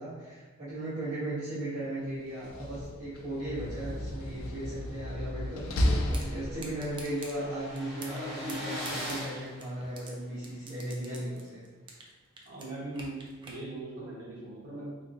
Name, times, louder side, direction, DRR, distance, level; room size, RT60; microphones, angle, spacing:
voice 1, 0.0-11.6, right 1 dB, 45° right, -13 dB, 1.1 m, -37 dB
Slam, 2.3-7.0, left 1 dB, 90° left, 0.5 m, -33 dB
sound 1, 4.9-5.0 5.3-5.4 5.6-10.5, left 1 dB, ahead, 1.4 m, -41 dB
sound 2, 6.1-6.3 6.6-7.3 7.8-8.2 8.5-10.1 10.4-12.1 12.4-13.6, right 3 dB, 25° right, 0.5 m, -45 dB
voice 2, 12.4-15.0, right 2 dB, 75° right, -7 dB, 1.3 m, -40 dB
3.5 x 2.9 x 2.6 m, 1.3 s
head